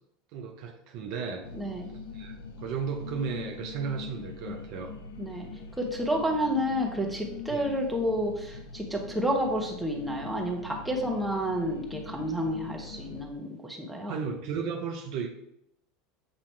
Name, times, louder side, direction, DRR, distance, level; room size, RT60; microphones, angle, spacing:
voice 1, 0.3-1.5 2.1-4.9 7.5-7.7 14.1-15.4, right 6 dB, 50° right, 2 dB, 0.8 m, -34 dB
sound 1, 1.4-13.2, left 5 dB, 65° left, 0.5 m, -43 dB
voice 2, 1.5-1.9 5.2-5.5 5.8-14.2, equal, 5° right, 0 dB, 1.3 m, -30 dB
7.7 x 2.9 x 4.5 m, 0.79 s
figure-of-eight pair, 75°, 0 cm